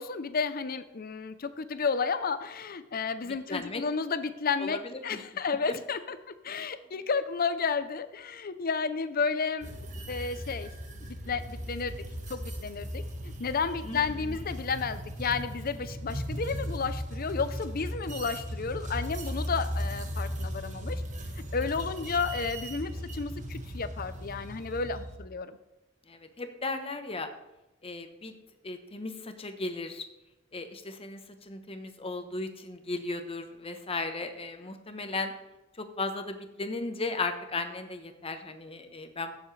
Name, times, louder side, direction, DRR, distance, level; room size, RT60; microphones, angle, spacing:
voice 1, 0.0-6.2 6.4-9.7 10.1-10.7 11.0-12.0 12.3-21.0 21.5-25.6, left 5 dB, 50° left, 12 dB, 0.6 m, -32 dB
voice 2, 3.5-3.8 4.6-4.8 5.1-5.2 6.5-6.6 13.8-14.0 14.3-14.4 26.1-27.3 27.8-28.3 28.6-30.0 30.5-31.2 31.5-35.3 35.8-39.4, left 3 dB, 30° left, 7 dB, 1.0 m, -36 dB
sound 1, 9.6-25.2, equal, 40° right, 1.2 m, -37 dB
16.0 x 7.2 x 3.3 m, 0.96 s
head